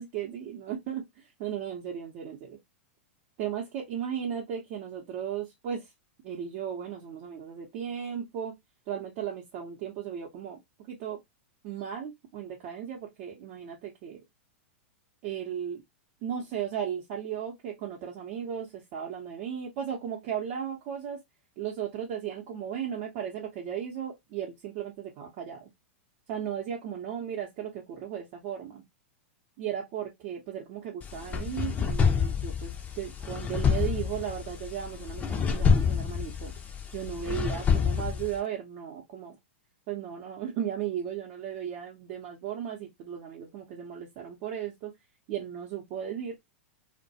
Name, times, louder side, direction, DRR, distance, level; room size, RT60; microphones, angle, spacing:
voice 1, 0.0-2.6 3.4-5.9 6.2-8.5 8.9-10.6 10.9-11.2 11.6-14.2 15.2-15.8 16.2-21.2 21.6-25.7 26.3-28.8 29.6-36.5 36.9-39.4 39.9-44.9 45.3-46.3, right 9 dB, 50° right, 0.6 m, -36 dB
sound 1, 31.0-38.4, left 6 dB, 25° left, 0.5 m, -27 dB
2.2 x 2.1 x 2.7 m
hypercardioid pair, 105°, 7 cm